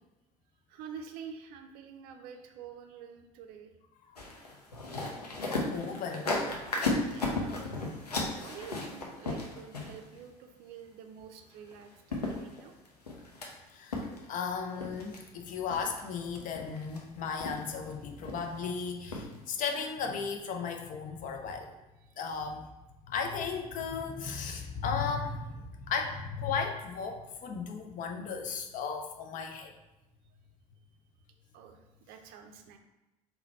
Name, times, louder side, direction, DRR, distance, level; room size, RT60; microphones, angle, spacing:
voice 1, 0.7-3.7 4.8-5.0 6.1-6.7 7.0-7.7 8.4-12.7 31.5-32.8, right 7 dB, 55° right, 6 dB, 0.5 m, -48 dB
sound 1, 4.2-10.2 11.7-11.8 12.1-13.5 13.9-14.5 14.8-15.2 15.7-16.0 16.3-17.0 17.4-17.9 18.2-18.7 19.1-19.3 19.6-19.7, left 2 dB, 85° left, 0.6 m, -35 dB
voice 2, 5.7-6.3 13.7-21.8 22.2-22.7 23.0-29.7, left 5 dB, 45° left, 4 dB, 0.6 m, -35 dB
3.9 x 2.2 x 4.1 m, 0.99 s
figure-of-eight pair, 60°, 19 cm